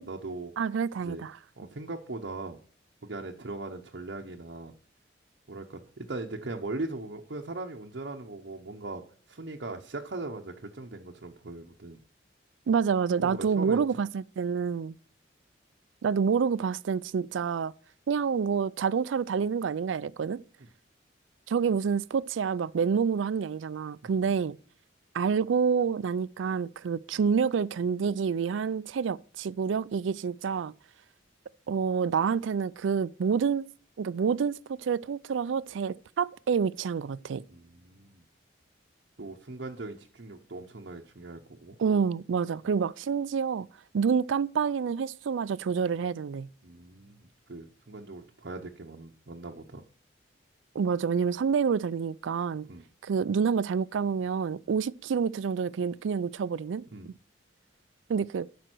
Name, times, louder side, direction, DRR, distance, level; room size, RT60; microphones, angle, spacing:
voice 1, 0.0-0.5 1.0-1.2 1.6-2.6 3.0-4.7 5.5-12.0 13.2-13.8 20.6-20.7 24.0-24.4 37.5-38.2 39.2-41.8 42.6-42.7 46.6-49.8 52.7-52.8 56.9-57.1, right 2 dB, 60° right, 0.8 m, -39 dB
voice 2, 0.6-1.3 12.7-14.9 16.0-17.7 18.1-20.4 21.5-24.6 25.1-30.7 31.7-33.7 34.0-37.4 41.8-43.7 43.9-46.5 50.8-52.7 53.0-57.1 58.1-58.5, right 6 dB, 80° right, 0.4 m, -28 dB
12.0 x 5.2 x 4.5 m
head